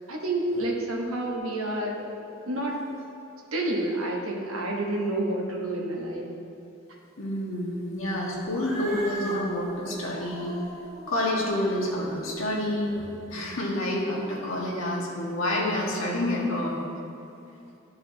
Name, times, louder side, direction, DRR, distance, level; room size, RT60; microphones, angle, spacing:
voice 1, 0.1-2.1 2.4-2.9 3.5-6.3, right 1 dB, 85° right, 0 dB, 1.1 m, -29 dB
voice 2, 7.2-10.5 11.1-16.8, left 1 dB, 80° left, -3 dB, 1.5 m, -28 dB
Cat, 8.4-13.0, right 1 dB, ahead, 1.5 m, -40 dB
12.5 x 4.7 x 2.8 m, 2.8 s
head